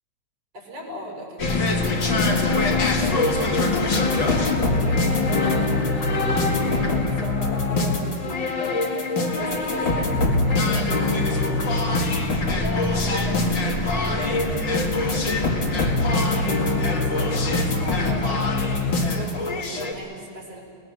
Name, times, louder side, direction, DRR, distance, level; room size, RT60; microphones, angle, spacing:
voice 1, 0.5-5.9 6.4-11.8 12.5-16.1 16.7-20.6, equal, 60° right, -1 dB, 6.6 m, -38 dB
sound 1, 1.4-19.9, left 2 dB, 40° left, 2.6 m, -23 dB
29.5 x 20.0 x 7.1 m, 2.2 s
omnidirectional pair, 3.3 m